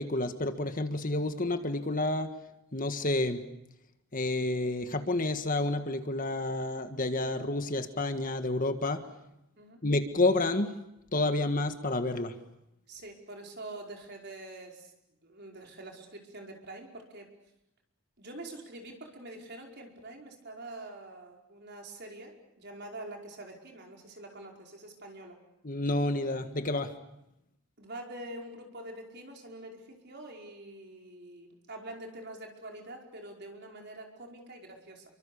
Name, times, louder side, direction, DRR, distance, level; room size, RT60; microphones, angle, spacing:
voice 1, 0.0-2.3 2.7-3.4 4.1-9.0 9.8-10.7 11.1-12.3 25.6-26.9, left 2 dB, 40° left, 8 dB, 1.6 m, -29 dB
voice 2, 12.9-14.9 15.2-17.3 18.2-25.4 27.8-35.0, right 1 dB, 50° right, 1 dB, 5.1 m, -45 dB
28.5 x 24.5 x 7.0 m, 0.86 s
head